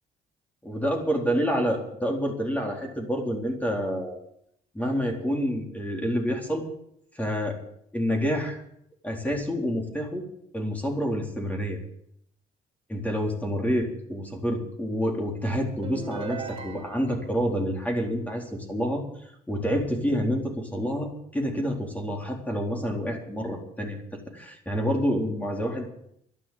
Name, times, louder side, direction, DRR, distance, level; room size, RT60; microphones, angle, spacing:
voice 1, 0.6-4.2 4.7-6.7 7.1-7.6 7.9-8.6 9.0-10.2 10.5-11.8 12.9-26.0, equal, 10° left, 1 dB, 4.1 m, -28 dB
sound 1, 15.8-17.3, right 4 dB, 30° right, 3.8 m, -38 dB
12.0 x 11.5 x 9.4 m, 0.72 s
cardioid pair, 110°, 17 cm